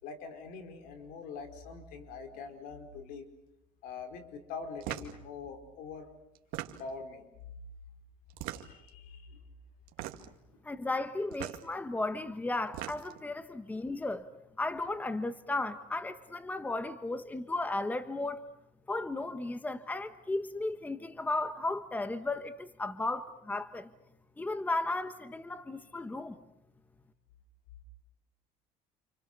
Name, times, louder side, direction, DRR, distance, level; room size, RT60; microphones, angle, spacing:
voice 1, 0.0-3.3 3.8-6.1 6.8-7.3 8.5-9.4, left 5 dB, 75° left, 5.0 m, -44 dB
sound 1, 4.8-5.2 6.3-7.0 8.3-8.9 9.9-10.4 11.3-11.6 12.5-13.2, right 14 dB, 80° right, 2.3 m, -40 dB
voice 2, 10.6-14.3 14.6-18.4 18.9-23.9 24.4-26.4, left 2 dB, 10° left, 1.3 m, -35 dB
29.5 x 28.5 x 6.9 m
cardioid pair, 115°, 15 cm